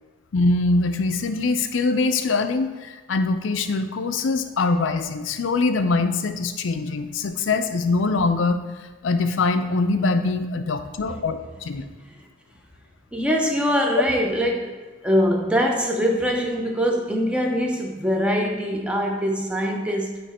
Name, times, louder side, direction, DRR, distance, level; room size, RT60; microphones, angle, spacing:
voice 1, 0.3-8.6 9.0-11.8, left 3 dB, 85° left, 8 dB, 0.5 m, -23 dB
voice 2, 13.1-14.8 15.0-20.2, equal, 5° right, 1 dB, 0.6 m, -23 dB
8.4 x 3.1 x 4.2 m, 1.3 s
head